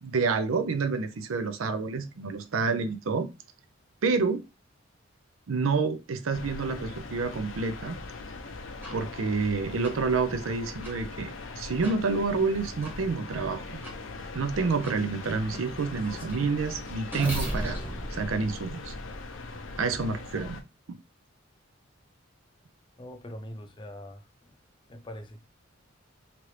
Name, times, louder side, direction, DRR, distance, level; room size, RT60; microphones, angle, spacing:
voice 1, 0.0-3.3 4.0-4.4 5.5-8.0 8.9-13.8 14.3-17.8 18.1-18.9 19.8-20.6 20.9-21.0, right 4 dB, 90° right, 0.5 m, -28 dB
sound 1, 6.3-20.6, left 3 dB, 70° left, 0.6 m, -40 dB
sound 2, 8.8-8.9 9.8-9.9 10.8-10.9 11.8-12.0 12.8-12.9 13.8-13.9 14.8-15.0 15.5-19.4, equal, 10° right, 1.0 m, -37 dB
voice 2, 23.0-24.6 24.9-25.4, left 1 dB, 25° left, 0.5 m, -43 dB
2.9 x 2.5 x 3.2 m
head